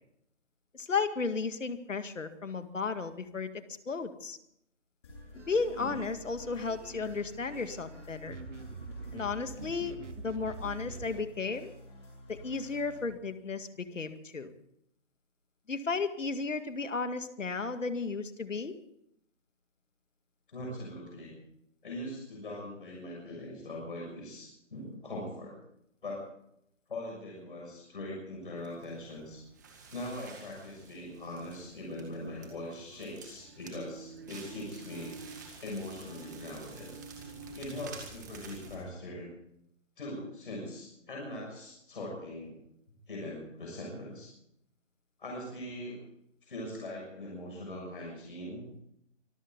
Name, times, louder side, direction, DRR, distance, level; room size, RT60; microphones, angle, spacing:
voice 1, 0.7-3.5 3.9-4.4 5.3-8.4 9.1-11.7 12.3-14.5 15.7-18.7, left 4 dB, 85° left, 9 dB, 2.1 m, -34 dB
sound 1, 5.0-13.0, left 1 dB, 25° left, 7.5 m, -50 dB
sound 2, 5.3-11.2, right 4 dB, 75° right, 1.7 m, -46 dB
voice 2, 20.5-21.3 21.8-25.5 26.0-26.2 26.9-29.4 29.9-35.1 35.6-36.9 37.5-39.3 40.0-42.5 43.1-44.3 45.2-46.0 46.4-48.6, left 1 dB, 45° left, -2 dB, 6.8 m, -41 dB
Crackle, 28.6-38.7, right 4 dB, 15° right, 1.9 m, -49 dB
25.0 x 14.5 x 3.9 m, 0.74 s
hypercardioid pair, 175°, 37 cm